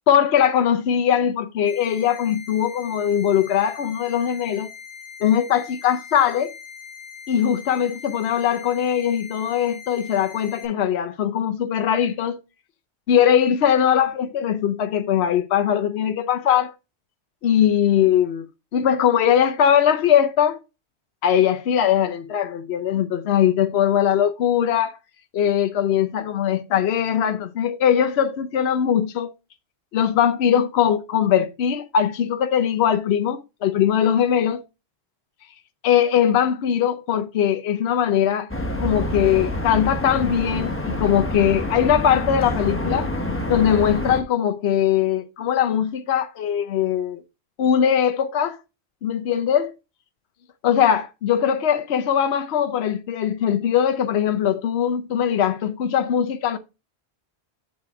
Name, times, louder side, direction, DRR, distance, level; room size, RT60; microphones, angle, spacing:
voice 1, 0.1-4.7 5.2-6.5 7.3-12.4 13.1-16.7 17.4-18.5 18.7-20.6 21.2-25.0 25.3-29.3 29.9-34.6 35.8-38.5 38.8-43.1 43.5-47.2 47.6-48.6 49.0-49.7 50.6-56.6, left 9 dB, 75° left, 0.9 m, -20 dB
sound 1, 1.7-10.7, left 7 dB, 30° right, 3.6 m, -41 dB
sound 2, 38.5-44.2, left 1 dB, 10° left, 1.0 m, -27 dB
7.8 x 4.2 x 4.7 m
omnidirectional pair, 1.1 m